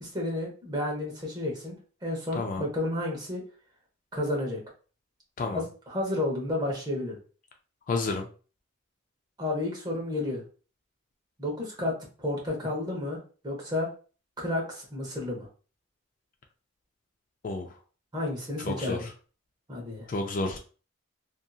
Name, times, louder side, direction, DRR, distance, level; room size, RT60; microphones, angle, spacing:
voice 1, 0.0-1.8 2.0-3.4 4.1-4.6 5.5-7.2 9.4-10.4 11.4-13.2 13.4-13.9 14.4-15.5 18.1-19.1 19.7-20.1, left 1 dB, 20° right, -2 dB, 0.8 m, -31 dB
voice 2, 2.3-2.7 5.4-5.6 7.9-8.3 17.4-17.7 18.6-19.1 20.1-20.6, left 3 dB, 40° left, 3 dB, 0.3 m, -30 dB
2.7 x 2.5 x 2.3 m, 0.38 s
head